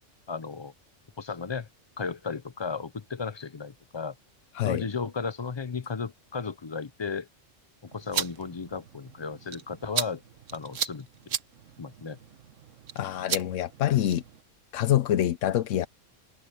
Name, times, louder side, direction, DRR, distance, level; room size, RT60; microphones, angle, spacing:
voice 1, 0.3-0.7 1.2-1.7 2.0-4.1 4.6-7.3 7.9-10.2 10.5-11.1 11.8-12.2, left 5 dB, 30° left, 0.5 m, -34 dB
sound 1, 7.9-14.4, right 8 dB, 85° right, 1.4 m, -36 dB
voice 2, 13.0-14.2 14.7-15.9, left 12 dB, 80° left, 1.0 m, -25 dB
omnidirectional pair, 1.3 m